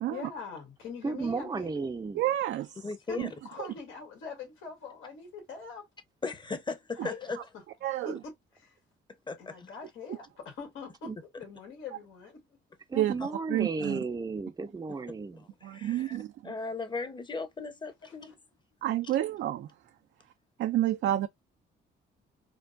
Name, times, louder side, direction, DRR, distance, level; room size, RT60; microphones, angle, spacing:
voice 1, 0.1-1.7 3.1-3.2 3.4-5.9 7.0-7.3 8.0-8.8 9.4-12.6 17.8-18.2, left 5 dB, 85° left, 1.9 m, -43 dB
voice 2, 1.0-2.2 11.1-11.2 12.9-15.4, right 4 dB, 20° right, 0.5 m, -34 dB
voice 3, 2.1-2.7 3.2-3.3 7.0-7.1 7.8-8.2 12.9-13.1 13.5-14.0 15.6-16.5 18.8-19.7 20.6-21.3, right 13 dB, 65° right, 0.4 m, -29 dB
voice 4, 2.8-3.3 6.2-7.4 9.3-9.7 13.2-13.3 14.9-15.0 15.4-16.2 16.4-18.3, left 4 dB, 25° left, 0.9 m, -37 dB
4.4 x 2.2 x 2.6 m
cardioid pair, 90°, 20 cm